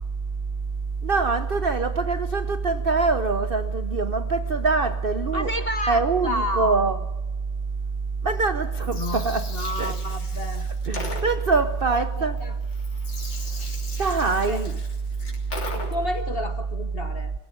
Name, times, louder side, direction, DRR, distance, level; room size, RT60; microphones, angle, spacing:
voice 1, 1.0-5.5 5.9-7.0 8.2-9.5 9.8-9.9 10.9-12.4 14.0-14.8, right 4 dB, 75° right, 0.5 m, -23 dB
voice 2, 5.3-6.8 8.9-10.7 11.9-12.5 14.5-14.6 15.7-17.3, left 1 dB, 45° left, 0.8 m, -31 dB
Gurgling, 8.7-16.2, left 2 dB, 65° left, 4.0 m, -39 dB
22.0 x 16.0 x 8.4 m
omnidirectional pair, 2.1 m